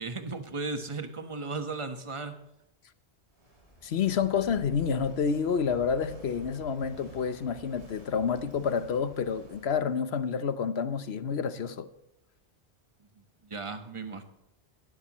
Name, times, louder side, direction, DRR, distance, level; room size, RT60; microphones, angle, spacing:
voice 1, 0.0-2.4 13.1-14.2, right 3 dB, 25° right, 1.4 m, -36 dB
Walk footsteps / Wind / Waves surf, 3.3-9.9, right 2 dB, 70° right, 4.3 m, -51 dB
voice 2, 3.8-11.9, left 6 dB, 65° left, 1.1 m, -29 dB
17.5 x 13.0 x 3.1 m
omnidirectional pair, 1.2 m